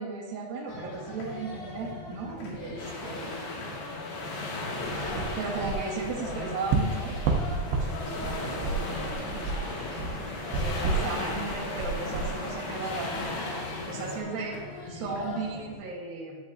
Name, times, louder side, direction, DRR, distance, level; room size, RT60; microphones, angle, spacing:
voice 1, 0.0-3.4 5.4-7.1 7.8-13.3 13.9-14.6 14.9-16.4, right 4 dB, 65° right, -5 dB, 2.7 m, -36 dB
sound 1, 0.7-15.8, left 2 dB, 85° left, 3.8 m, -41 dB
sound 2, 2.8-14.2, left 2 dB, 65° left, 2.5 m, -37 dB
sound 3, 4.8-13.3, right 4 dB, 85° right, 2.9 m, -32 dB
11.5 x 7.9 x 2.6 m, 1.5 s
omnidirectional pair, 4.9 m